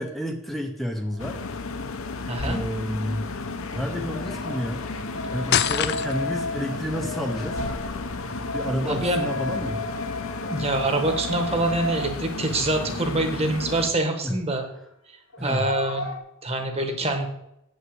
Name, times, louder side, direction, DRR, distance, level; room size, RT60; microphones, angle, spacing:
voice 1, 0.0-1.4 2.4-3.3 3.7-4.8 5.3-7.6 8.5-9.8 14.2-14.3 15.4-15.7, equal, ahead, 3 dB, 0.6 m, -30 dB
sound 1, 1.1-1.2 3.7-12.6 12.9-13.0 15.3-16.2, left 1 dB, 85° left, 1.7 m, -34 dB
sound 2, 1.2-13.9, left 3 dB, 65° left, 0.8 m, -33 dB
voice 2, 2.3-2.6 8.9-9.2 10.4-14.6 15.1-16.0 16.4-17.3, right 2 dB, 25° right, 5 dB, 1.3 m, -25 dB
sound 3, 5.5-6.5, left 10 dB, 50° left, 0.4 m, -24 dB
8.3 x 5.5 x 7.7 m, 0.83 s
head